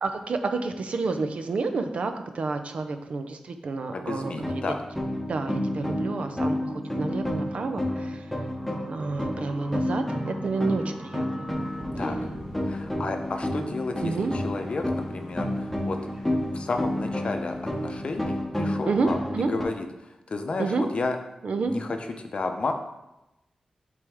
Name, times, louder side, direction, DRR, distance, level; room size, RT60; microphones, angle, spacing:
voice 1, 0.0-4.6 5.3-8.2 8.9-11.5 14.0-14.3 18.8-19.5 20.6-20.9 21.4-21.7, right 3 dB, 70° right, 6 dB, 0.5 m, -29 dB
voice 2, 3.9-4.8 12.0-12.2 12.6-16.0 16.5-19.9 20.3-21.2 21.6-22.7, left 3 dB, 55° left, 5 dB, 0.6 m, -32 dB
sound 1, 4.1-19.7, left 1 dB, 5° left, 0.9 m, -30 dB
sound 2, 6.8-18.4, equal, 20° right, 1.3 m, -45 dB
8.1 x 3.4 x 3.5 m, 0.94 s
wide cardioid pair, 110°, 2 cm